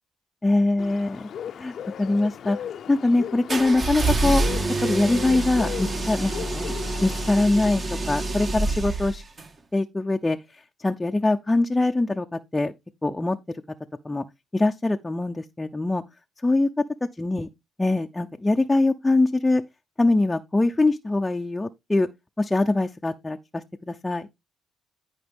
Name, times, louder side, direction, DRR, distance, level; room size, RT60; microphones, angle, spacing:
voice 1, 0.4-1.3 1.5-2.6 2.9-4.4 4.8-9.2 9.7-12.7 13.0-13.6 14.0-14.2 14.5-16.0 16.4-16.7 17.2-17.5 17.8-19.6 20.0-22.1 22.4-24.3, left 2 dB, 15° left, 0.6 m, -23 dB
Bird, 0.8-7.3, left 9 dB, 65° left, 0.6 m, -37 dB
sound 1, 3.5-9.5, right 2 dB, 40° right, 2.0 m, -27 dB
14.0 x 4.9 x 3.6 m
cardioid pair, 90°, 0 cm